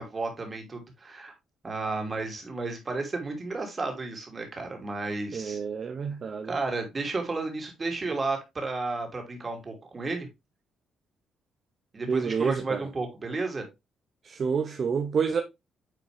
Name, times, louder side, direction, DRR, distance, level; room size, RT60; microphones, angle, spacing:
voice 1, 0.0-1.3 1.6-5.6 6.4-10.3 11.9-13.7, right 3 dB, 30° right, 2.7 m, -32 dB
voice 2, 5.3-6.5 12.1-12.9 14.2-15.4, right 6 dB, 50° right, 0.8 m, -28 dB
9.3 x 3.8 x 3.3 m
cardioid pair, 90°, 0 cm